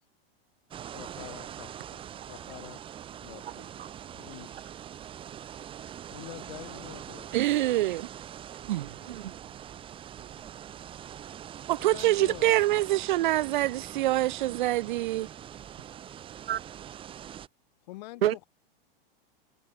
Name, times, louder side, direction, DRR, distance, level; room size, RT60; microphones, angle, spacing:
sound 1, 0.7-17.5, right 10 dB, 15° right, 5.6 m, -43 dB
voice 1, 0.9-2.8 3.2-4.7 6.1-7.3 11.8-12.5 13.0-13.8 17.8-18.5, left 19 dB, 45° left, 4.0 m, -47 dB
voice 2, 3.5-3.9 7.3-7.5 8.8-9.6 10.2-10.5 16.5-16.6 18.2-18.4, right 12 dB, 85° right, 1.9 m, -32 dB
voice 3, 7.3-8.1 8.6-8.9 11.7-15.3, right 16 dB, 55° right, 1.2 m, -25 dB
supercardioid pair, 170°, 29 cm